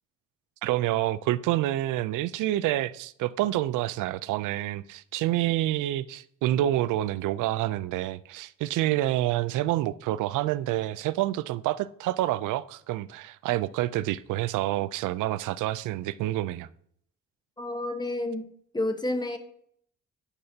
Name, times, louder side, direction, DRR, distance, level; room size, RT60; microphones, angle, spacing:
voice 1, 0.6-16.7, right 14 dB, 85° right, 0.5 m, -28 dB
voice 2, 17.6-18.5 18.7-19.4, left 1 dB, 15° left, 1.2 m, -30 dB
10.0 x 9.8 x 2.8 m
cardioid pair, 90°, 30 cm